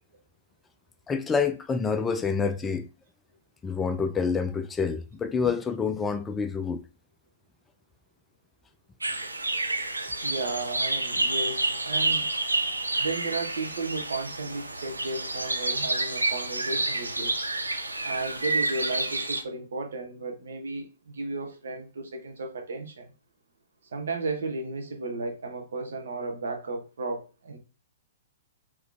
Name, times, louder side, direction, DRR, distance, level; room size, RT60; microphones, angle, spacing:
voice 1, 1.1-2.9 3.6-6.8, left 5 dB, 15° left, 0.4 m, -27 dB
sound 1, 9.0-19.4, right 2 dB, 85° right, 0.6 m, -29 dB
voice 2, 10.2-12.3 13.0-17.4 18.0-23.1 23.9-27.6, right 3 dB, 65° right, 1.1 m, -34 dB
3.8 x 3.1 x 3.4 m
figure-of-eight pair, 110°, 0 cm